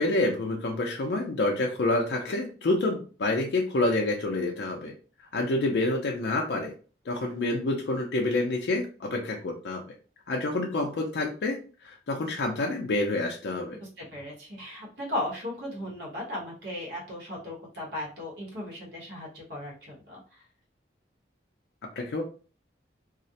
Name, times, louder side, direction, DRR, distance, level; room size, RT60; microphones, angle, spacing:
voice 1, 0.0-4.9 5.3-6.7 7.1-9.8 10.3-11.6 11.8-13.8 22.0-22.2, left 2 dB, 65° left, 0 dB, 0.4 m, -28 dB
voice 2, 13.7-20.2, left 1 dB, 65° right, -3 dB, 0.9 m, -36 dB
2.4 x 2.0 x 2.7 m, 0.37 s
head